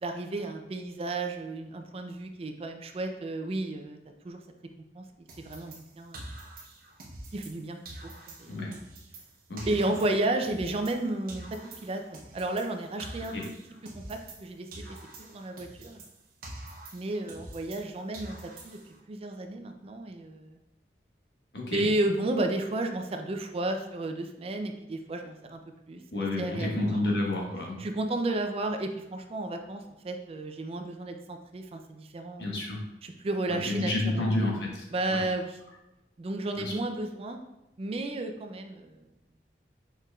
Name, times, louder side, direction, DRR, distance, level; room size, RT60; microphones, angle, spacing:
voice 1, 0.0-4.0 4.2-4.4 5.0-5.1 5.4-6.2 7.3-8.1 8.4-8.5 9.7-11.4 11.8-13.3 13.9-16.0 16.9-18.4 18.6-18.8 19.1-20.6 21.7-25.6 25.9-26.0 26.4-27.0 27.8-32.5 33.0-34.4 34.9-35.5 36.2-37.4 37.8-39.0, right 2 dB, 35° right, 5 dB, 0.4 m, -32 dB
sound 1, 5.3-7.6 7.9-11.0 11.3-14.5 14.7-17.9 18.1-19.0, right 2 dB, 55° right, 0.8 m, -46 dB
voice 2, 9.5-10.0 13.3-13.5 21.5-21.9 26.1-27.8 32.4-32.8 33.5-34.8 35.1-35.2 36.5-36.7, left 2 dB, 70° left, -2 dB, 1.2 m, -30 dB
4.7 x 4.4 x 2.3 m, 0.92 s
head